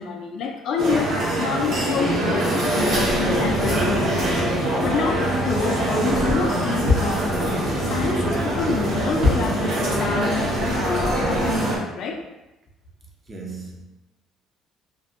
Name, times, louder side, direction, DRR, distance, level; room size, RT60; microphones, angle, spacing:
voice 1, 0.0-12.2, left 5 dB, 55° left, 0.3 m, -28 dB
sound 1, 0.8-11.8, right 1 dB, 55° right, 0.9 m, -23 dB
sound 2, 2.9-5.6 5.9-10.0 10.3-11.6, left 2 dB, 85° right, 0.8 m, -29 dB
voice 2, 13.3-13.8, right 3 dB, 25° right, 0.4 m, -37 dB
2.6 x 2.1 x 2.4 m
cardioid pair, 155°, 0 cm